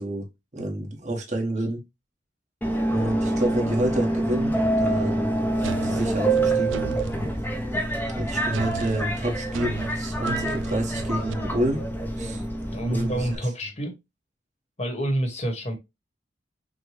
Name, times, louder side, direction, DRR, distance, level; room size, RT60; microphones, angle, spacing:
voice 1, 0.0-1.8 2.9-6.8 8.1-11.8 12.2-12.4 12.9-13.3, right 1 dB, 40° right, 1.2 m, -29 dB
Subway metro underground, 2.6-13.4, right 1 dB, 10° left, 0.6 m, -26 dB
sound 1, 5.6-7.2 8.5-11.3, right 6 dB, 85° right, 0.4 m, -36 dB
voice 2, 12.7-13.9 14.8-15.8, right 1 dB, 35° left, 1.1 m, -27 dB
5.9 x 2.2 x 3.2 m
head